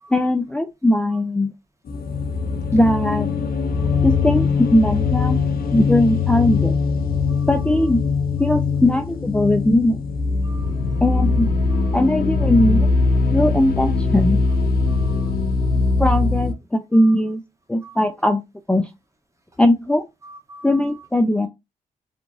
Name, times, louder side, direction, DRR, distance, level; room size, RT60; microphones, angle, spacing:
voice 1, 0.1-1.5 2.7-3.3 4.0-5.4 5.7-6.7 7.5-8.0 8.4-10.0 11.0-11.5 11.9-12.9 13.3-14.4 16.0-17.4 17.7-18.4 18.7-18.9 19.6-20.0 20.6-21.5, left 1 dB, 5° left, 0.4 m, -19 dB
sound 1, 1.9-16.5, left 4 dB, 70° left, 0.5 m, -21 dB
voice 2, 10.4-11.0 11.7-11.9 14.9-15.3 16.9-17.2 17.8-18.0 20.2-20.9, right 2 dB, 20° right, 1.2 m, -45 dB
2.7 x 2.6 x 2.5 m
supercardioid pair, 45°, 16 cm